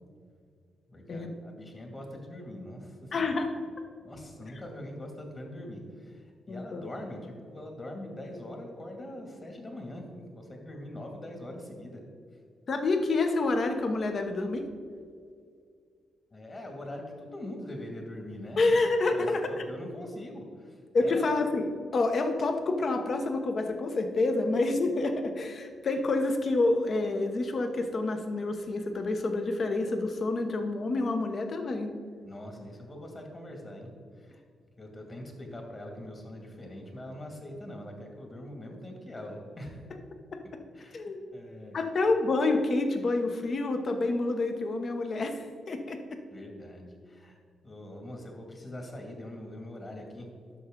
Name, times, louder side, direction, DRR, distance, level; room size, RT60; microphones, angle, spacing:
voice 1, 0.9-3.3 4.0-12.0 12.3-12.4 16.3-18.8 19.1-21.3 32.2-34.4 34.8-39.8 40.7-41.0 41.3-41.9 46.3-47.4 47.6-50.3, left 1 dB, 35° left, 2 dB, 2.1 m, -43 dB
voice 2, 3.1-3.5 6.5-6.9 12.7-14.6 18.6-19.5 20.9-21.7 21.9-31.9 40.3-40.4 40.9-41.2 41.7-46.2, left 2 dB, 50° left, 6 dB, 0.9 m, -28 dB
10.5 x 6.5 x 3.7 m, 2.2 s
cardioid pair, 85°, 0 cm